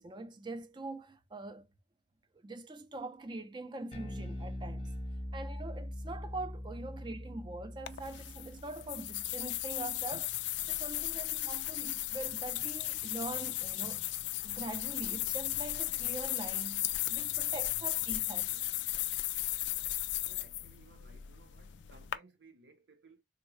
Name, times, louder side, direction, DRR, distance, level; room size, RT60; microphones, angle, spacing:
voice 1, 0.0-1.7 2.3-4.9 5.3-10.4 10.7-14.1 14.4-18.6, right 2 dB, 25° right, 0.4 m, -43 dB
Bass guitar, 3.9-10.4, left 1 dB, 35° left, 0.6 m, -43 dB
sound 1, 7.9-22.1, left 15 dB, 85° left, 0.3 m, -36 dB
voice 2, 20.3-23.2, right 4 dB, 85° right, 0.7 m, -60 dB
3.5 x 2.1 x 3.0 m
head